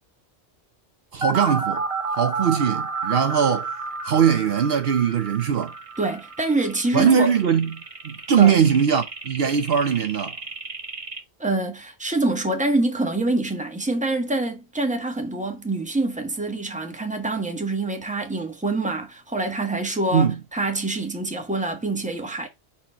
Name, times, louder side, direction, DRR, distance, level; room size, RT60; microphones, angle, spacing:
voice 1, 1.1-1.8 2.1-3.7 4.0-5.7 6.9-7.7 8.0-10.4 20.1-20.4, right 7 dB, 65° right, 0.9 m, -20 dB
sound 1, 1.2-11.2, right 4 dB, 35° right, 0.9 m, -31 dB
voice 2, 6.0-7.3 8.4-8.5 11.4-22.5, right 2 dB, 5° right, 1.2 m, -25 dB
4.3 x 4.2 x 5.6 m
omnidirectional pair, 1.1 m